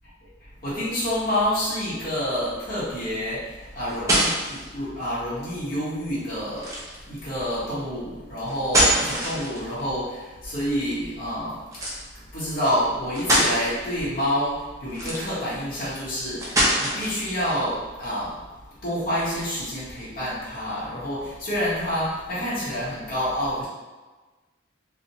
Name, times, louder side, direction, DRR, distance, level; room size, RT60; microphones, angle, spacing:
voice 1, 0.6-6.7 7.0-11.9 12.3-18.4 18.8-23.7, equal, 50° left, -10 dB, 1.1 m, -28 dB
sound 1, 3.6-4.6 6.6-7.0 8.5-9.8 11.7-12.0 12.7-12.8 13.1-13.6 14.9-15.5 16.4-17.2, right 1 dB, 15° right, 0.5 m, -23 dB
2.4 x 2.2 x 2.8 m, 1.2 s
head